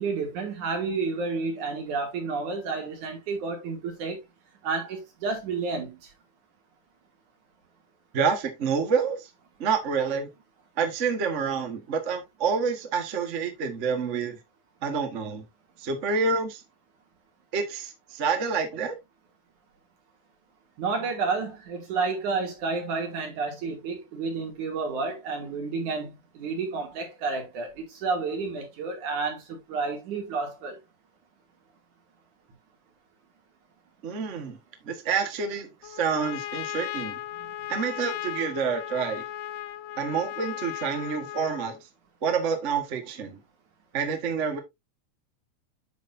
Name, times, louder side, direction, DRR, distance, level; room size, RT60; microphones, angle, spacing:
voice 1, 0.0-4.2 4.6-6.0 20.8-30.8 37.4-37.5, right 4 dB, 80° right, 4.0 m, -30 dB
voice 2, 8.1-9.3 9.6-10.3 10.8-14.4 14.8-15.4 15.8-16.6 17.5-19.0 34.0-34.6 34.8-37.1 37.7-39.2 40.0-41.8 42.2-43.4 43.9-44.6, right 5 dB, 35° right, 1.2 m, -28 dB
Trumpet, 35.8-41.8, left 12 dB, 75° left, 1.8 m, -36 dB
9.2 x 6.5 x 2.6 m
omnidirectional pair, 3.4 m